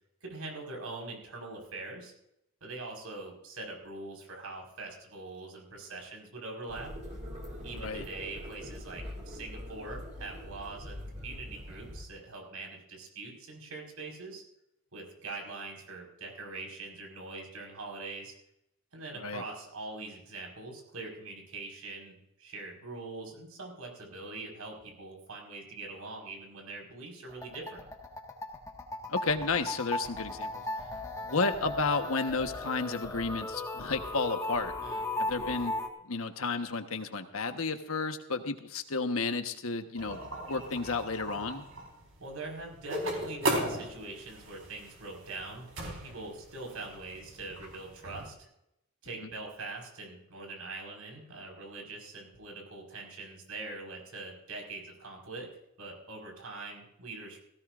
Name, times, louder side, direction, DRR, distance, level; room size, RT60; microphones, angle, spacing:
voice 1, 0.2-2.1 2.6-6.9 7.6-14.4 14.9-18.3 18.9-27.9 34.8-35.0 42.2-48.5 49.0-55.5 55.8-57.4, right 3 dB, 85° right, 1 dB, 5.1 m, -43 dB
sound 1, 6.7-12.0, equal, 35° right, 3.6 m, -43 dB
voice 2, 7.7-8.0 19.1-19.4 29.1-30.6 31.2-34.7 35.2-35.7 36.0-40.2 40.5-41.6 49.2-49.3, left 4 dB, 75° left, 7 dB, 1.3 m, -32 dB
sound 2, 27.3-35.9, left 2 dB, 15° left, 1.6 m, -37 dB
sound 3, 40.0-48.3, right 1 dB, 65° right, 4.6 m, -37 dB
17.5 x 16.5 x 2.6 m, 0.81 s
head